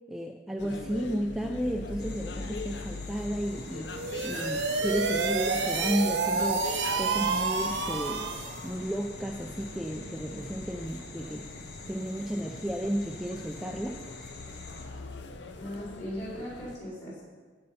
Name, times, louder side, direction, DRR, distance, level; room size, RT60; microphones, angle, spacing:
voice 1, 0.1-8.3 8.6-11.5 11.9-14.3, equal, ahead, 2 dB, 0.4 m, -33 dB
sound 1, 0.6-16.8, left 3 dB, 75° left, 0.7 m, -42 dB
sound 2, 2.0-14.9, left 3 dB, 55° left, 1.5 m, -47 dB
sound 3, 3.9-8.7, right 4 dB, 80° right, 1.0 m, -29 dB
voice 2, 15.6-17.4, equal, 40° left, -6 dB, 4.1 m, -39 dB
15.5 x 5.4 x 5.6 m, 1.5 s
head